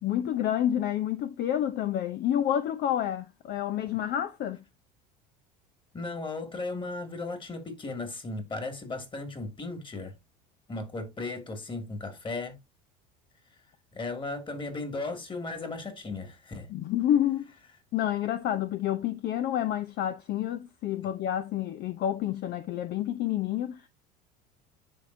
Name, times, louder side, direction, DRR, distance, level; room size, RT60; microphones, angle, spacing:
voice 1, 0.0-4.6 16.7-17.5 17.9-23.9, left 11 dB, 50° left, 0.7 m, -29 dB
voice 2, 5.9-10.1 10.7-12.6 13.9-16.7, left 3 dB, 25° left, 2.2 m, -36 dB
10.0 x 3.6 x 2.6 m
hypercardioid pair, 85°, 21 cm